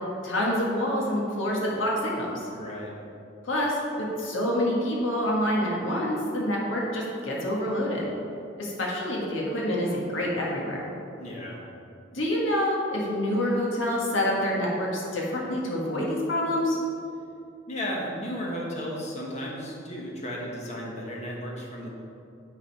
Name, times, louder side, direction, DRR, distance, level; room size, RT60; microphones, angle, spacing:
voice 1, 0.2-2.5 3.4-8.1 8.6-10.9 12.1-16.8, left 1 dB, 85° left, -3 dB, 1.5 m, -27 dB
voice 2, 2.5-2.9 11.2-11.6 17.7-21.9, equal, 35° left, -3 dB, 1.2 m, -34 dB
9.5 x 4.1 x 4.1 m, 2.6 s
head